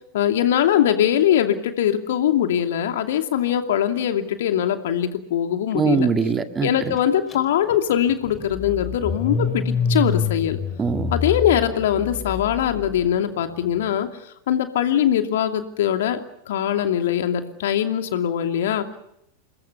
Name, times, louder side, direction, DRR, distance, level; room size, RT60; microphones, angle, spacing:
voice 1, 0.1-6.1 6.6-10.6 11.1-14.1 14.5-18.9, left 10 dB, 55° left, 6 dB, 2.6 m, -22 dB
voice 2, 5.7-7.0 10.8-11.1, right 5 dB, 20° right, 8 dB, 2.0 m, -22 dB
Car / Engine starting, 7.3-7.4 7.7-12.9, left 4 dB, 20° left, 4.6 m, -27 dB
29.5 x 21.5 x 6.9 m, 0.78 s
figure-of-eight pair, 90°, 0 cm